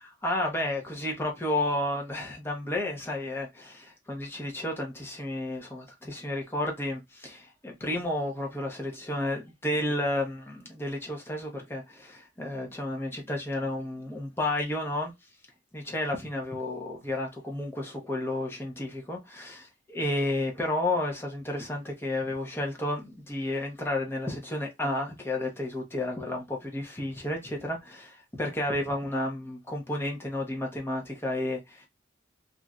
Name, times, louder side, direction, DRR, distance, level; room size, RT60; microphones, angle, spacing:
voice 1, 0.2-15.1 15.7-31.9, left 1 dB, 10° left, 0.9 m, -32 dB
3.1 x 2.7 x 2.3 m
head